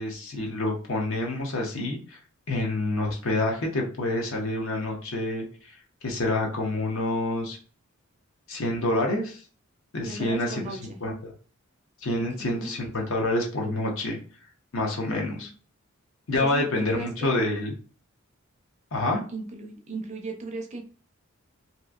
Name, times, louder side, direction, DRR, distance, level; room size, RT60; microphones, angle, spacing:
voice 1, 0.0-2.2 2.5-5.5 6.0-7.6 8.5-9.4 9.9-11.3 12.0-14.2 14.7-15.5 16.3-17.8 18.9-19.2, left 2 dB, 65° left, 1 dB, 0.8 m, -27 dB
voice 2, 10.0-11.0 12.4-12.8 15.3-15.5 16.4-17.3 19.3-20.8, right 2 dB, 35° right, 3 dB, 0.5 m, -37 dB
2.8 x 2.5 x 2.4 m, 0.38 s
head